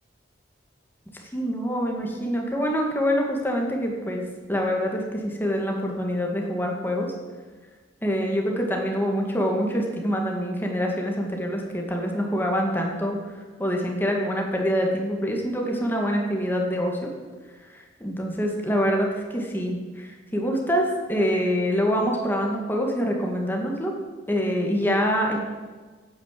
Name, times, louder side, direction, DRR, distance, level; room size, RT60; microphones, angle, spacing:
voice 1, 1.3-4.2 4.5-7.1 8.0-13.2 13.6-17.1 17.7-23.9 24.3-25.4, equal, 10° left, 0 dB, 2.0 m, -25 dB
10.0 x 8.9 x 7.5 m, 1.4 s
head